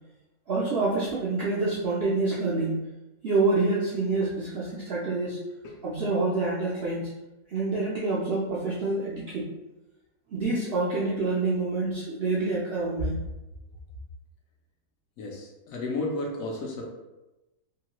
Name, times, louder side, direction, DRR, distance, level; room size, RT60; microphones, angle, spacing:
voice 1, 0.5-2.8 3.2-5.4 5.8-7.1 7.5-9.5 10.3-13.2, right 3 dB, 80° right, -7 dB, 0.5 m, -27 dB
voice 2, 15.2-16.9, left 2 dB, 70° left, -1 dB, 0.9 m, -33 dB
2.9 x 2.3 x 2.9 m, 1.0 s
omnidirectional pair, 1.7 m